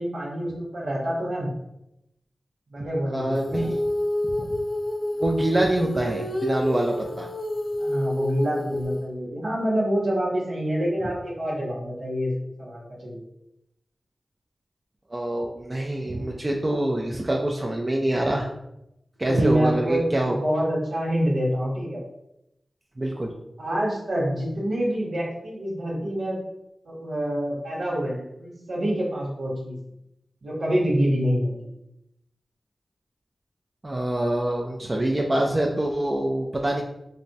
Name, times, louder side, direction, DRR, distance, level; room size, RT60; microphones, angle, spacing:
voice 1, 0.0-1.5 2.7-3.7 7.8-12.3 12.6-13.3 19.3-22.0 23.6-26.4 26.8-29.8 30.4-31.7, equal, 90° right, -7 dB, 0.8 m, -26 dB
voice 2, 3.1-3.8 4.2-4.6 5.2-7.3 15.1-18.5 19.2-20.4 23.0-23.3 33.8-36.8, right 1 dB, 35° right, -1 dB, 0.4 m, -25 dB
Female singing, 3.3-9.1, left 1 dB, 45° left, 0.4 m, -29 dB
3.3 x 2.0 x 2.6 m, 0.84 s
cardioid pair, 45°, 0 cm